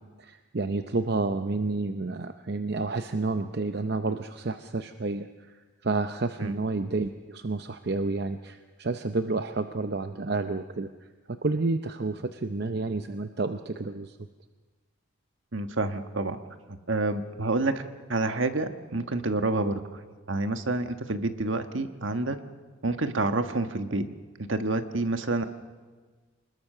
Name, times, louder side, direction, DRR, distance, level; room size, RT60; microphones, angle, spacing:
voice 1, 0.0-14.2, right 3 dB, 50° right, 8 dB, 0.7 m, -30 dB
voice 2, 15.5-16.4 16.7-17.8 18.1-19.8 20.3-22.4 22.8-24.0 24.5-25.4, right 2 dB, 70° right, 8 dB, 1.4 m, -28 dB
26.0 x 20.5 x 6.7 m, 1.4 s
head